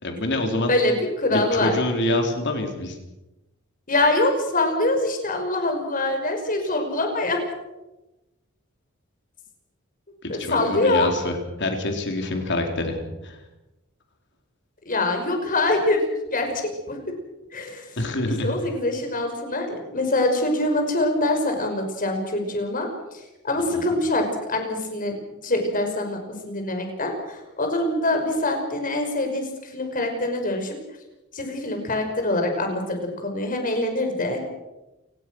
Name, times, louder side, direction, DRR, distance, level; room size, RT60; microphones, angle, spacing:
voice 1, 0.0-0.7 1.3-3.0 10.2-13.0 13.2-13.4 18.0-18.5 23.7-23.9, left 1 dB, 55° left, 3 dB, 4.2 m, -26 dB
voice 2, 0.7-1.7 3.9-7.4 10.3-11.1 14.9-16.5 16.9-17.0 17.5-17.9 18.2-22.9 23.4-25.2 25.4-30.8 31.3-34.4, left 2 dB, 40° left, 4 dB, 5.7 m, -24 dB
28.5 x 18.5 x 6.4 m, 0.99 s
head